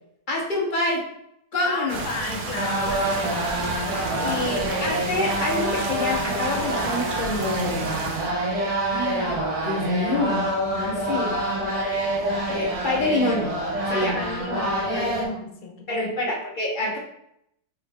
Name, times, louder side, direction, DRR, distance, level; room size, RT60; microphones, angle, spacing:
voice 1, 0.3-1.0 1.5-2.0 4.2-7.9 8.8-11.4 12.5-13.5 13.9-14.2 15.9-17.0, left 2 dB, 45° left, -3 dB, 0.6 m, -27 dB
voice 2, 1.6-3.6 4.1-4.3 12.3-12.4 13.9-16.1, left 4 dB, 85° left, 2 dB, 1.2 m, -34 dB
sound 1, 1.9-8.3, right 3 dB, 75° right, 1.1 m, -32 dB
sound 2, 2.6-15.3, right 1 dB, 35° right, 0.6 m, -27 dB
3.4 x 3.0 x 3.4 m, 0.76 s
omnidirectional pair, 1.6 m